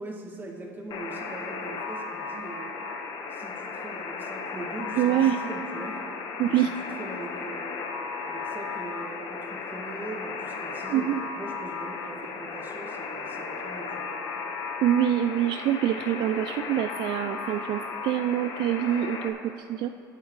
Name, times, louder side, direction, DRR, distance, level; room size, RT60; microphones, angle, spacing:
voice 1, 0.0-2.8 3.3-6.1 6.5-6.7 7.0-7.7 8.2-14.2, right 2 dB, 20° right, -1 dB, 2.1 m, -41 dB
Alarm, 0.9-19.3, left 4 dB, 55° left, 1.3 m, -35 dB
voice 2, 5.0-5.4 6.4-6.7 10.9-11.2 14.8-19.9, right 11 dB, 60° right, 9 dB, 0.3 m, -25 dB
21.0 x 8.2 x 3.2 m, 2.9 s
cardioid pair, 115°, 9 cm